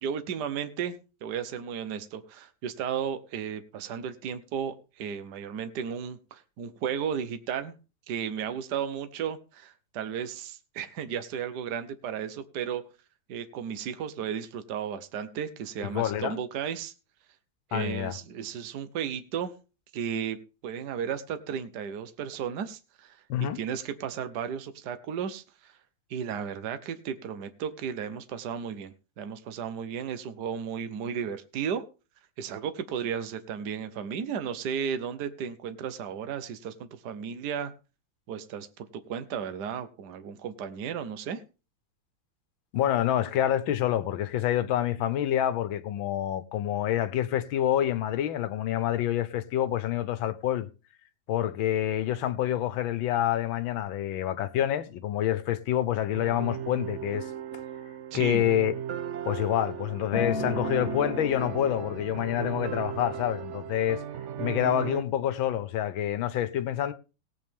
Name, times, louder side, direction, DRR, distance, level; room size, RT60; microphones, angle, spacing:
voice 1, 0.0-7.7 8.1-12.8 13.3-16.9 17.7-19.5 19.9-25.7 26.1-31.8 32.4-37.7 38.3-38.7 39.1-41.4 58.1-58.5, right 8 dB, 60° right, 1.5 m, -34 dB
voice 2, 15.8-16.4 17.7-18.1 23.3-23.6 42.7-50.7 51.3-57.3 58.1-58.8 59.3-64.0 64.4-66.9, left 11 dB, 85° left, 1.7 m, -27 dB
sound 1, 56.1-65.0, right 10 dB, 85° right, 0.6 m, -36 dB
Acoustic guitar, 60.1-64.4 65.2-65.3, left 4 dB, 45° left, 3.4 m, -37 dB
18.0 x 8.3 x 3.6 m
omnidirectional pair, 2.1 m